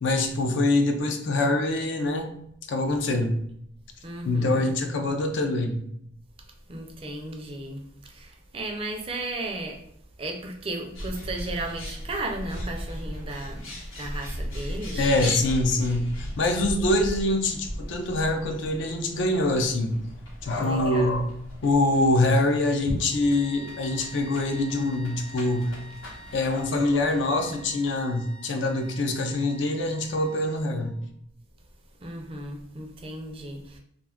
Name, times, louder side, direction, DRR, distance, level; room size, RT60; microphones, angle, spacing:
voice 1, 0.0-2.4 2.7-3.3 4.3-5.8 14.9-20.0 20.4-21.3 21.6-25.7 26.3-30.9, left 2 dB, 65° left, 5 dB, 0.4 m, -24 dB
voice 2, 4.0-4.7 6.7-9.8 10.2-13.7 14.0-15.3 15.7-15.8 20.6-21.1 32.0-33.8, right 2 dB, 25° right, 3 dB, 0.4 m, -35 dB
Bird, 10.9-27.7, equal, 85° left, 0.9 m, -37 dB
sound 1, 23.1-31.0, right 1 dB, 30° left, 0.9 m, -47 dB
2.5 x 2.3 x 3.5 m, 0.72 s
head